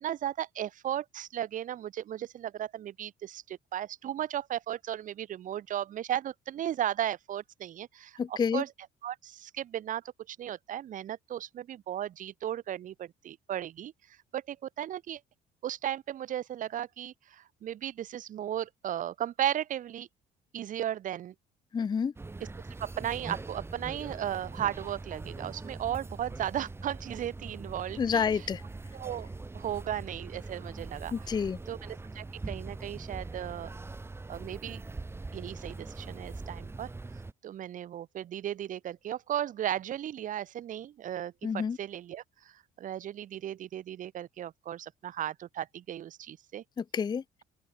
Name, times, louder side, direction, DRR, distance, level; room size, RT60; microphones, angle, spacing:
voice 1, 0.0-8.7 9.0-13.9 14.3-15.2 15.6-20.1 20.5-21.3 22.8-28.2 28.9-29.3 29.5-31.3 31.7-33.7 34.3-34.8 35.3-36.9 37.4-46.6, right 11 dB, 50° right, 0.9 m, -35 dB
voice 2, 8.2-8.6 21.7-22.1 28.0-28.6 31.1-31.6 41.4-41.8 46.8-47.2, left 6 dB, 25° left, 0.5 m, -29 dB
sound 1, 22.2-37.3, right 3 dB, 15° right, 1.2 m, -42 dB
open air
cardioid pair, 110°, 17 cm